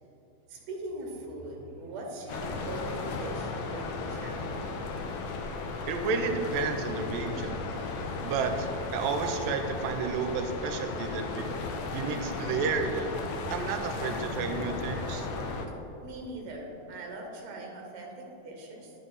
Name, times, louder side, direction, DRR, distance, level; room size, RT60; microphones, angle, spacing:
voice 1, 0.5-4.8 16.0-18.9, right 1 dB, 60° right, 0 dB, 2.0 m, -41 dB
sound 1, 2.3-15.7, left 3 dB, 90° left, 1.6 m, -35 dB
voice 2, 5.9-7.7 8.2-11.5 11.9-13.1 13.5-15.3, right 5 dB, 80° right, 6 dB, 2.2 m, -31 dB
9.3 x 5.8 x 4.0 m, 2.9 s
omnidirectional pair, 4.0 m